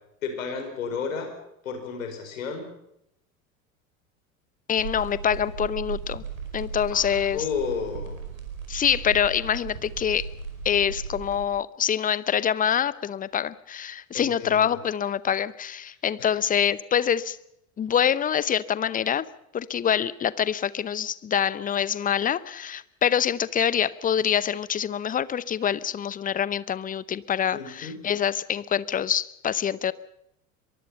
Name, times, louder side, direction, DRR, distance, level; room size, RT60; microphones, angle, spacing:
voice 1, 0.2-1.3 1.6-2.7 6.9-8.2 14.1-14.8 16.2-16.3 27.5-28.0, left 5 dB, 70° left, 6 dB, 5.0 m, -32 dB
voice 2, 4.7-6.2 6.5-7.4 8.7-10.3 10.6-17.4 17.8-19.3 19.5-29.9, left 8 dB, 20° left, 19 dB, 0.8 m, -25 dB
sound 1, 4.8-11.4, right 5 dB, 70° right, 5.1 m, -36 dB
23.5 x 23.0 x 5.6 m, 0.80 s
figure-of-eight pair, 75°, 42 cm